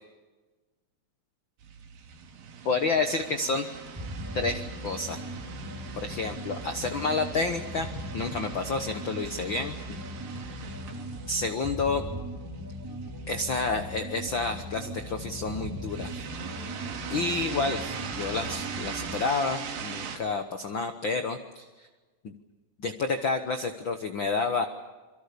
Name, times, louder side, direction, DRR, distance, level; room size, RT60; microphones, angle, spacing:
sound 1, 1.6-20.2, right 7 dB, 80° right, 4.0 m, -41 dB
voice 1, 2.6-3.6 4.3-5.2 6.0-7.9 8.1-9.7 11.3-12.0 13.3-16.1 17.1-21.9 22.2-22.3 22.8-24.7, left 3 dB, 85° left, 7 dB, 1.0 m, -29 dB
sound 2, 4.0-19.3, equal, 10° right, 1.7 m, -39 dB
27.0 x 24.0 x 6.9 m, 1.3 s
omnidirectional pair, 4.1 m